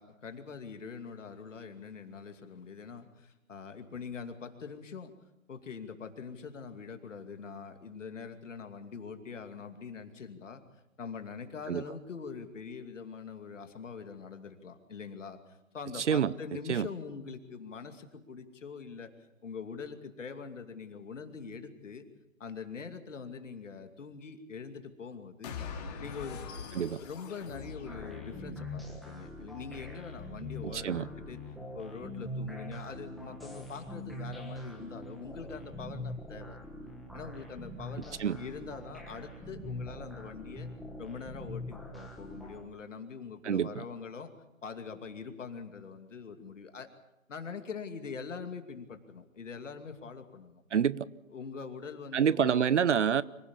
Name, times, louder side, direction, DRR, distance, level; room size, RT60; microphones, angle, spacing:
voice 1, 0.0-5.1 5.5-10.6 11.0-19.1 19.4-22.1 22.4-25.6 26.0-26.4 27.0-31.4 31.7-36.6 37.1-40.7 41.0-44.3 44.6-46.9 47.3-50.6 51.3-52.6, left 5 dB, 65° left, 2.6 m, -43 dB
sound 1, 25.4-28.8, left 6 dB, 30° left, 2.8 m, -43 dB
sound 2, 27.9-42.6, left 1 dB, ahead, 1.4 m, -43 dB
voice 2, 30.6-31.1 38.2-38.4 43.4-43.8 50.7-51.1 52.1-53.2, right 8 dB, 60° right, 0.7 m, -27 dB
25.0 x 17.0 x 7.2 m
hypercardioid pair, 155°, 41 cm